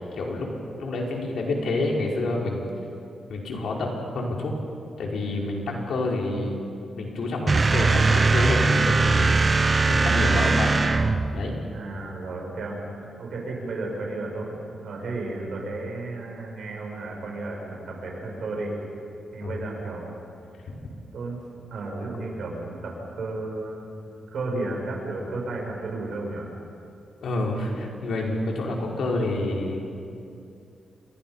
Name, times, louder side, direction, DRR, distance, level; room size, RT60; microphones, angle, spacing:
voice 1, 0.1-0.5 0.8-2.7 3.3-4.5 5.0-6.6 7.0-10.7 11.3-11.5 19.4-19.6 20.7-20.8 27.2-29.8, left 2 dB, 75° left, -1 dB, 4.8 m, -28 dB
sound 1, 7.5-11.4, right 3 dB, 30° right, 0.9 m, -20 dB
voice 2, 11.7-18.8 19.3-20.1 21.1-21.4 21.7-23.8 24.3-26.5, right 2 dB, 65° right, -1 dB, 6.8 m, -33 dB
29.0 x 23.5 x 5.7 m, 2.6 s
wide cardioid pair, 125°, 0 cm